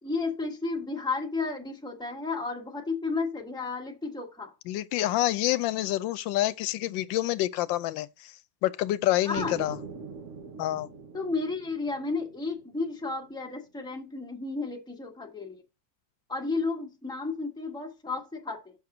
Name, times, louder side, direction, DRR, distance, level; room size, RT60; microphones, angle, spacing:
voice 1, 0.0-4.5 9.3-9.6 11.1-15.6 16.3-18.7, left 3 dB, 5° left, 1.2 m, -32 dB
voice 2, 4.7-8.3 8.6-9.8 10.6-10.9, left 14 dB, 85° left, 1.3 m, -27 dB
sound 1, 9.4-13.3, right 4 dB, 50° right, 1.1 m, -43 dB
6.5 x 4.3 x 5.9 m
omnidirectional pair, 2.0 m